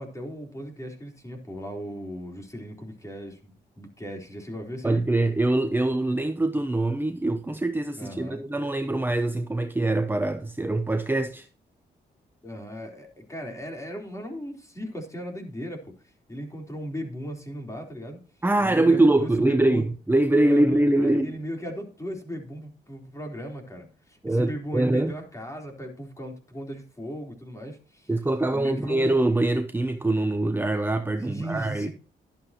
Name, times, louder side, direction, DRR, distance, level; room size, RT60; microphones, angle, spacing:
voice 1, 0.0-5.0 8.0-8.4 12.4-15.9 16.3-18.2 18.6-19.8 20.4-28.1 28.5-29.2 31.2-31.9, equal, 15° left, 3.9 m, -37 dB
voice 2, 4.8-11.5 18.4-21.4 24.2-25.1 28.1-31.9, right 2 dB, 10° right, 0.9 m, -23 dB
12.0 x 11.0 x 3.0 m
cardioid pair, 70°, 18 cm